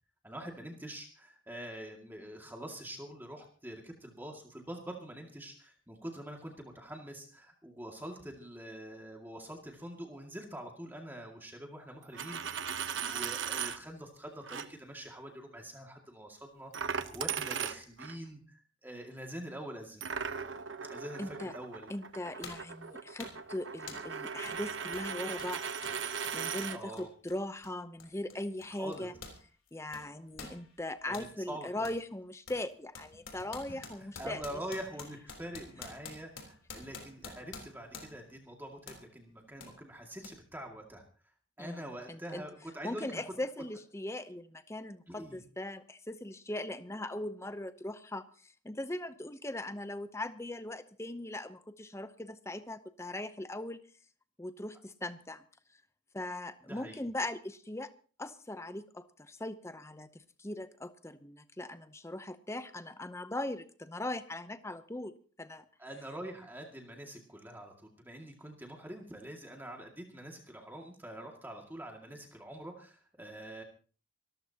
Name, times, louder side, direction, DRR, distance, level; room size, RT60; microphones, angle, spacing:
voice 1, 0.2-20.0 20.8-21.9 26.7-27.1 28.7-29.1 31.0-31.9 34.2-41.0 41.6-43.2 45.1-45.4 56.7-57.0 65.8-73.6, right 1 dB, 10° right, 2 dB, 2.2 m, -45 dB
Coin (dropping), 12.0-13.8 14.5-14.7 16.7-18.2 20.0-26.8, right 7 dB, 65° right, 1.0 m, -38 dB
voice 2, 21.2-21.5 21.9-29.1 29.7-34.4 41.6-41.8 42.1-42.4 42.8-53.8 54.4-55.4 56.1-57.9 58.2-65.6, left 1 dB, 15° left, 12 dB, 0.7 m, -40 dB
sound 1, 21.6-21.7 22.4-22.7 23.2-23.5 23.9-24.1 24.5-24.6 24.9-29.4 29.7-31.3 31.8-32.0 32.5-38.3 38.9-39.1 39.6-39.7 40.2-40.3, left 4 dB, 75° left, 3.7 m, -49 dB
26.0 x 14.0 x 2.9 m, 0.38 s
head